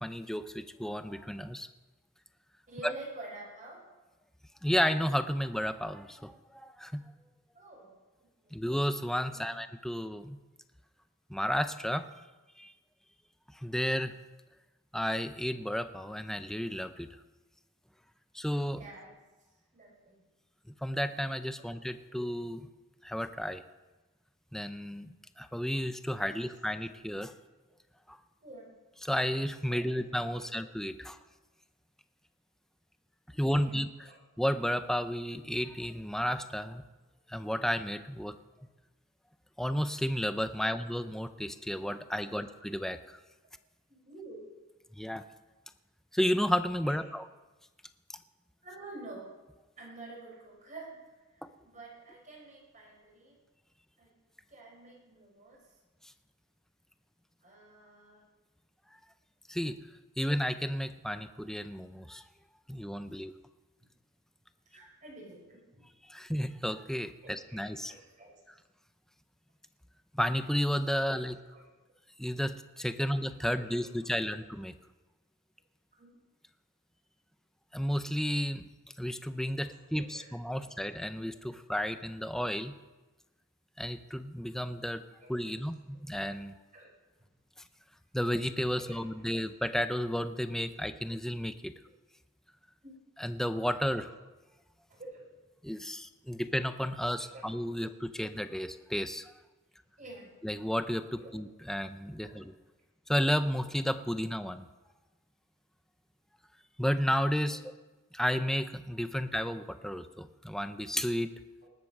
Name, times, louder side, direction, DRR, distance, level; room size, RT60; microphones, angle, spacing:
voice 1, 0.0-1.7 2.8-2.9 4.6-7.0 8.5-10.4 11.3-12.1 12.6-12.7 13.5-14.2 14.9-17.1 18.3-18.8 20.8-22.7 23.0-23.6 24.5-27.3 28.1-28.2 29.0-31.2 33.4-33.9 34.4-36.8 37.3-38.3 39.6-43.2 45.0-45.2 46.1-47.3 51.4-51.5 59.5-59.8 60.2-62.2 62.7-63.3 66.0-67.9 70.1-71.4 72.2-74.7 77.7-78.7 79.0-82.8 83.8-85.0 85.3-86.5 88.1-91.7 93.2-94.1 95.6-99.3 100.4-102.5 103.1-104.7 106.8-107.6 108.1-111.3, equal, ahead, 10 dB, 0.6 m, -32 dB
voice 2, 2.7-3.8 7.5-7.9 8.2-8.6 9.3-9.5 18.8-19.1 19.7-20.2 28.4-28.7 29.7-30.0 30.3-30.6 33.5-33.7 34.0-34.2 40.6-40.7 42.3-42.5 43.9-44.4 46.8-47.0 48.6-49.3 49.8-51.0 51.6-53.4 54.0-54.1 54.5-55.6 57.4-58.2 64.7-65.9 67.2-68.4 71.1-71.2 71.5-71.6 73.0-73.1 73.4-73.8 74.1-74.2 76.0-76.1 79.9-80.6 85.2-85.6 86.7-86.9 88.7-89.0 92.8-92.9 94.0-94.1 94.9-95.3 97.1-97.4 100.0-100.3 101.2-101.4 102.2-102.3 107.4-107.6, right 2 dB, 40° right, -2 dB, 5.7 m, -49 dB
19.5 x 8.2 x 6.6 m, 1.1 s
head